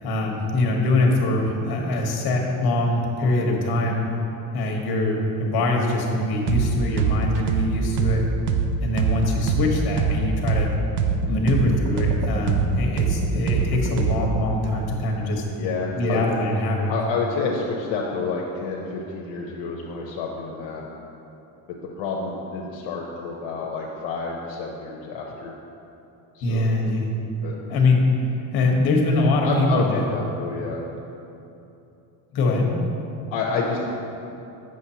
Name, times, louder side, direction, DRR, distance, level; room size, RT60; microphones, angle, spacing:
voice 1, 0.0-4.0 4.5-8.2 8.8-10.7 11.3-15.5 15.9-16.9 26.4-27.1 27.7-28.0 28.5-30.0 32.3-32.7, left 2 dB, 55° left, 0 dB, 1.2 m, -23 dB
sound 1, 6.5-6.7 7.0-10.7 11.0-14.4, right 6 dB, 85° right, 0.6 m, -23 dB
voice 2, 15.6-16.3 16.9-20.8 21.8-25.5 26.3-26.7 27.4-27.6 29.4-30.8 33.3-33.8, left 4 dB, 75° left, -2 dB, 0.8 m, -29 dB
7.6 x 6.2 x 2.8 m, 2.8 s
cardioid pair, 125°, 44 cm